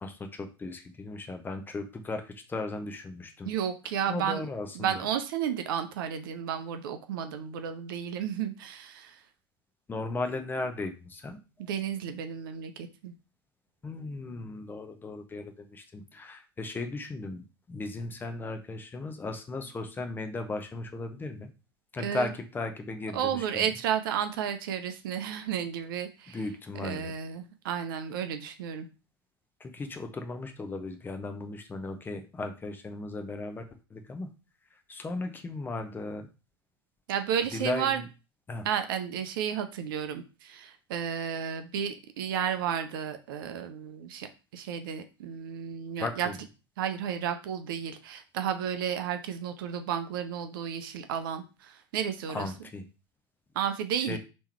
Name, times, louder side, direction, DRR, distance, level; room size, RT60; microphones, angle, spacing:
voice 1, 0.0-3.5 4.1-4.9 9.9-11.4 13.8-21.5 21.9-23.6 26.3-27.1 29.6-33.6 33.9-34.3 34.9-36.3 37.5-38.0 38.5-38.7 46.0-46.4 52.3-52.9 54.1-54.2, left 3 dB, 15° left, 6 dB, 0.7 m, -36 dB
voice 2, 3.4-4.5 4.7-9.2 11.6-13.1 22.0-22.4 23.1-26.4 26.8-28.9 37.1-38.0 38.6-44.3 44.5-46.3 46.8-52.5 53.5-54.2, right 8 dB, 55° right, 8 dB, 0.6 m, -32 dB
3.5 x 3.0 x 4.5 m, 0.31 s
figure-of-eight pair, 80°, 13 cm